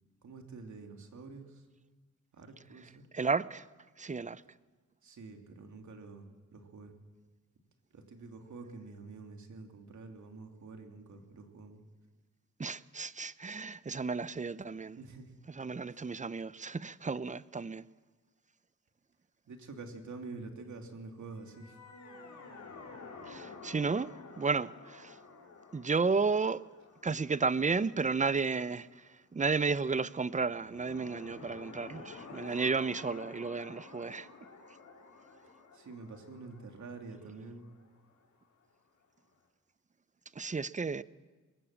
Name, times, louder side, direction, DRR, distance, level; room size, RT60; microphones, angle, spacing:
voice 1, 0.2-1.6 2.3-3.0 5.0-6.9 7.9-11.8 15.0-15.3 15.9-16.1 19.5-21.8 32.6-32.7 35.7-37.7, right 3 dB, 70° right, 2.8 m, -47 dB
voice 2, 3.1-3.7 4.0-4.4 12.6-15.0 15.5-17.8 23.3-24.1 24.4-25.2 25.7-26.6 27.0-34.3 40.4-41.0, right 4 dB, 25° right, 0.7 m, -32 dB
sound 1, 21.3-28.6 30.5-38.3, left 4 dB, 75° left, 4.0 m, -51 dB
21.5 x 18.5 x 7.4 m
cardioid pair, 60°, 30 cm